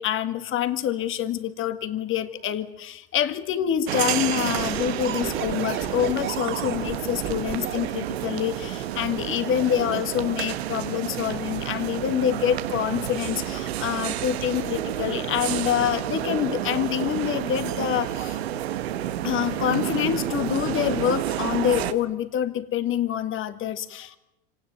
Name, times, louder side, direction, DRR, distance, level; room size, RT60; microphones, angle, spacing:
voice 1, 0.0-18.4 19.2-24.2, left 10 dB, 40° left, 11 dB, 1.9 m, -26 dB
sound 1, 3.9-21.9, right 12 dB, 90° right, 1.4 m, -30 dB
sound 2, 4.5-7.9 8.9-10.5 11.2-11.5, right 9 dB, 40° right, 3.1 m, -35 dB
25.5 x 18.0 x 9.5 m, 0.89 s
supercardioid pair, 105°, 31 cm